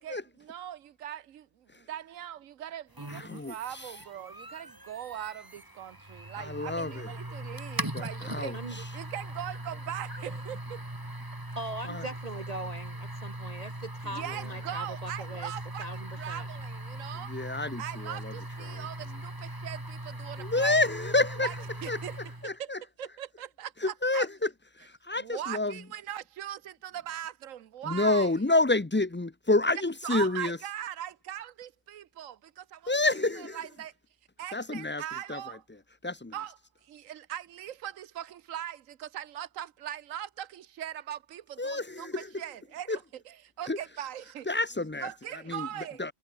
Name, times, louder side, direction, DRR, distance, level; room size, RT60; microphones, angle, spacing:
voice 1, 0.0-10.8 14.1-17.3 17.8-20.8 21.4-21.6 21.8-22.2 22.6-22.7 23.0-24.3 25.2-28.3 29.7-32.9 33.4-33.9 34.4-35.6 36.3-44.6 45.0-46.1, right 11 dB, 85° right, 1.2 m, -40 dB
Hard drive spin up and head alignment, 2.9-22.5, right 1 dB, 15° right, 2.6 m, -40 dB
voice 2, 3.1-3.9 6.4-7.1 7.9-8.9 11.8-12.0 17.3-18.3 18.6-18.8 20.4-21.5 21.9-22.0 22.4-22.8 23.8-24.5 24.8-25.8 27.8-30.6 32.9-33.6 34.5-35.0 35.3-35.6 36.0-36.3 41.6-42.3 42.9-43.0 43.7-43.8 44.5-45.1 45.5-45.7 46.0-46.1, left 2 dB, 15° left, 0.4 m, -29 dB
voice 3, 11.5-15.5 15.8-16.5, right 2 dB, 35° right, 1.0 m, -40 dB
omnidirectional pair, 1.3 m